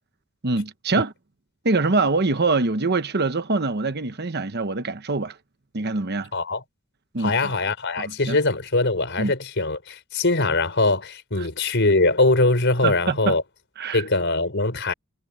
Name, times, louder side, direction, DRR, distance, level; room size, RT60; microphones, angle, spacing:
voice 1, 0.4-1.1 1.6-5.4 5.7-6.3 7.1-7.5 8.0-8.4 9.2-9.3 11.4-11.5 12.8-13.4 13.8-14.0, right 3 dB, 50° right, 1.1 m, -24 dB
voice 2, 6.3-6.6 7.2-13.4 13.9-14.9, left 2 dB, 55° left, 4.8 m, -22 dB
head